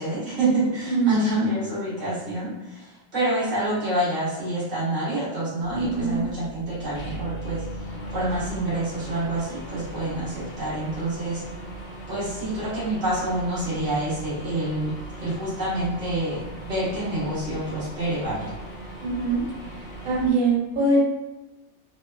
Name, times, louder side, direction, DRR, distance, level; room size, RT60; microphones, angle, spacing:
voice 1, 0.0-11.4 12.1-18.5, right 1 dB, 90° right, -10 dB, 1.2 m, -27 dB
voice 2, 0.9-1.4 5.7-6.2 19.0-19.4 20.0-21.0, right 3 dB, 60° right, -9 dB, 1.7 m, -23 dB
sound 1, 5.6-20.3, right 2 dB, 40° left, 0.6 m, -38 dB
2.8 x 2.2 x 2.2 m, 1.1 s
omnidirectional pair, 1.3 m